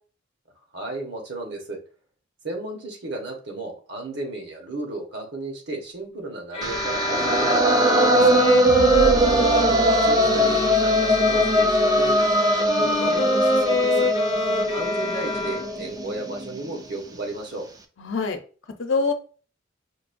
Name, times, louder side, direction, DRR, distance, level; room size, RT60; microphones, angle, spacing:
voice 1, 0.7-1.8 2.4-8.4 9.0-14.1 14.7-17.7, right 2 dB, 60° right, 2 dB, 1.1 m, -34 dB
sound 1, 6.5-16.0, left 2 dB, 30° left, 0.5 m, -26 dB
sound 2, 6.6-16.7, right 1 dB, 20° right, 0.3 m, -21 dB
voice 2, 8.6-8.9 14.3-14.8 18.0-18.4 18.8-19.1, left 4 dB, 80° left, 5 dB, 0.7 m, -27 dB
sound 3, 8.6-12.1, left 1 dB, 75° right, 0.6 m, -33 dB
5.0 x 2.3 x 2.5 m, 0.38 s
head